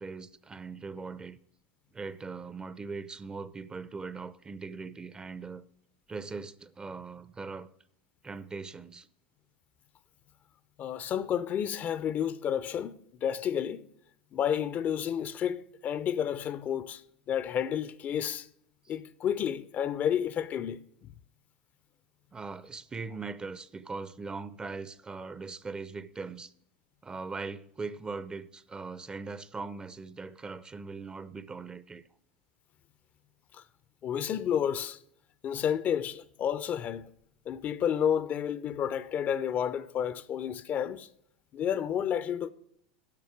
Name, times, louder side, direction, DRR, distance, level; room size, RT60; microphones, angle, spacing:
voice 1, 0.0-1.4 1.9-5.6 6.1-7.7 8.2-9.1 22.3-26.5 27.0-32.0, right 4 dB, 20° right, 0.7 m, -40 dB
voice 2, 10.8-13.9 14.3-17.0 17.3-18.5 18.9-21.1 33.5-33.6 34.0-35.0 35.4-37.1 37.5-41.1 41.5-42.5, left 9 dB, 40° left, 0.7 m, -31 dB
10.5 x 7.1 x 9.5 m
hypercardioid pair, 90°, 5 cm